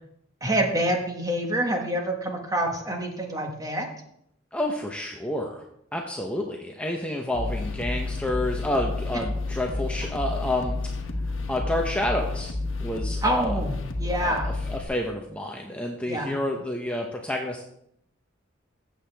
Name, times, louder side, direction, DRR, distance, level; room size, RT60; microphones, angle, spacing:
voice 1, 0.4-3.9 13.2-14.5 16.1-16.3, right 1 dB, 20° right, 2 dB, 1.5 m, -26 dB
voice 2, 4.5-5.6 5.9-10.8 11.5-12.5 12.8-13.6 14.0-14.4 14.7-17.6, left 1 dB, 5° left, 1 dB, 0.8 m, -29 dB
sound 1, 7.3-14.8, left 2 dB, 75° left, 1.3 m, -30 dB
15.0 x 7.7 x 3.4 m, 0.74 s
head